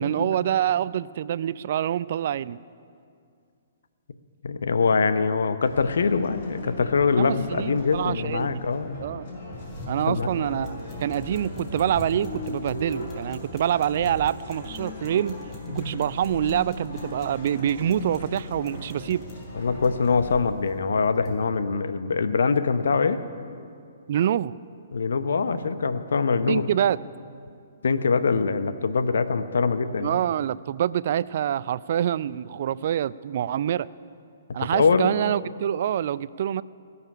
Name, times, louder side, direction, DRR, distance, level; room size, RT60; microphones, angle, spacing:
voice 1, 0.0-2.6 7.2-8.6 9.0-9.3 9.9-10.7 11.0-15.4 15.7-19.2 24.1-24.6 26.5-27.0 30.0-33.9 34.5-36.6, right 10 dB, 50° right, 19 dB, 0.3 m, -26 dB
voice 2, 4.4-9.0 10.1-10.3 19.5-23.2 24.9-26.6 27.8-30.2 34.7-35.1, left 5 dB, 65° left, 10 dB, 0.9 m, -23 dB
sound 1, 5.6-20.4, left 1 dB, 45° left, 5.4 m, -37 dB
sound 2, 9.5-21.4, left 2 dB, 20° left, 3.7 m, -44 dB
19.5 x 7.0 x 10.0 m, 2.4 s
figure-of-eight pair, 120°, 0 cm